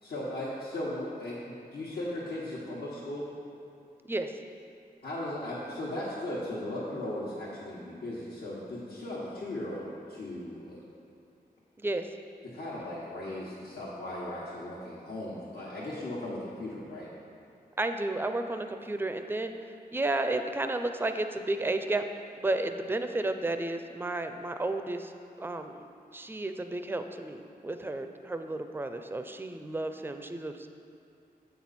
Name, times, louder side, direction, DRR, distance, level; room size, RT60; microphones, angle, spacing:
voice 1, 0.0-3.3 5.0-10.8 12.4-17.1, left 1 dB, 80° left, -8 dB, 1.3 m, -37 dB
voice 2, 11.8-12.1 17.8-19.5 19.9-22.0 22.4-25.1 25.4-25.9 26.1-30.7, right 2 dB, 15° right, 7 dB, 0.4 m, -32 dB
8.0 x 6.1 x 4.2 m, 2.7 s
wide cardioid pair, 95°, 16 cm